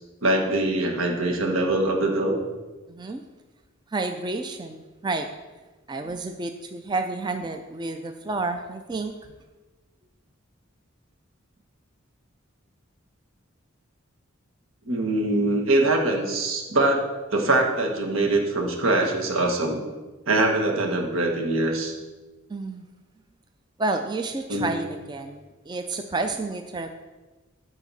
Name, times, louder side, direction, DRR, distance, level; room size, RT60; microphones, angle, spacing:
voice 1, 0.2-2.4 14.9-17.0 17.3-19.8 20.3-21.9 24.5-24.7, right 2 dB, 85° right, 1 dB, 1.5 m, -23 dB
voice 2, 2.9-3.3 3.9-5.3 5.9-9.3 22.5-22.9 23.8-26.9, right 3 dB, 20° right, 6 dB, 0.4 m, -30 dB
12.5 x 4.9 x 4.2 m, 1.2 s
head